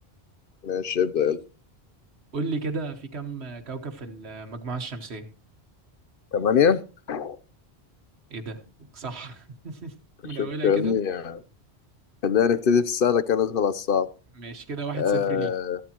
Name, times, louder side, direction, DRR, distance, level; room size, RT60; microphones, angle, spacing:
voice 1, 0.6-1.4 6.3-6.8 7.1-7.4 10.4-11.4 12.2-14.1 15.0-15.8, left 7 dB, 55° left, 14 dB, 0.9 m, -23 dB
voice 2, 2.3-5.3 8.3-8.6 8.9-9.9 10.2-10.9 14.3-15.5, right 3 dB, 70° right, 5 dB, 1.6 m, -34 dB
14.5 x 13.0 x 3.0 m, 0.36 s
omnidirectional pair, 1.1 m